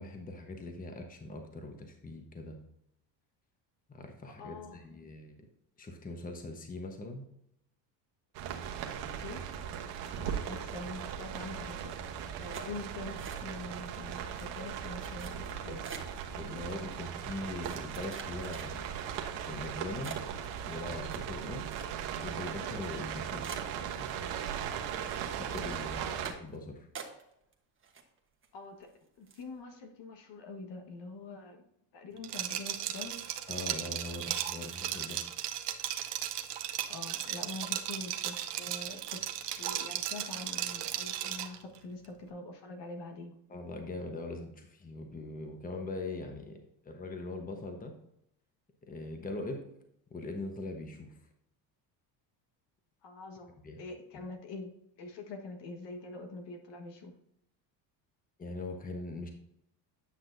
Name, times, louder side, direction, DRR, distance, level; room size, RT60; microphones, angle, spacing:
voice 1, 0.0-2.6 3.9-5.3 5.8-7.3 10.2-10.5 15.7-15.8 16.4-18.9 19.5-20.2 20.7-21.7 22.2-23.6 25.3-26.9 33.5-35.2 43.5-46.6 46.8-47.9 48.8-49.6 50.1-51.2 53.6-53.8 58.4-59.3, left 2 dB, 15° left, 4 dB, 1.1 m, -41 dB
voice 2, 4.4-4.8 9.2-9.4 10.3-11.9 12.4-15.8 26.0-26.3 28.5-28.9 29.2-31.6 31.9-33.2 36.9-39.2 39.6-43.3 53.0-54.7 55.0-57.1, left 3 dB, 55° left, 4 dB, 1.6 m, -44 dB
sound 1, 8.3-26.3, right 8 dB, 80° right, 1.2 m, -38 dB
sound 2, 12.5-13.8 14.1-14.5 15.0-16.2 16.9-17.0 17.6-19.0 19.5-19.7 20.0-22.2 22.5-22.6 23.0-23.1 23.4-24.5 24.8-25.2 25.5-25.7 26.2-26.6 26.9-27.5 27.8-28.5 28.8-28.9 29.3-29.5, right 6 dB, 25° right, 1.3 m, -46 dB
Liquid, 32.2-41.6, right 12 dB, 60° right, 0.9 m, -36 dB
9.7 x 5.9 x 2.7 m, 0.77 s
cardioid pair, 110°, 48 cm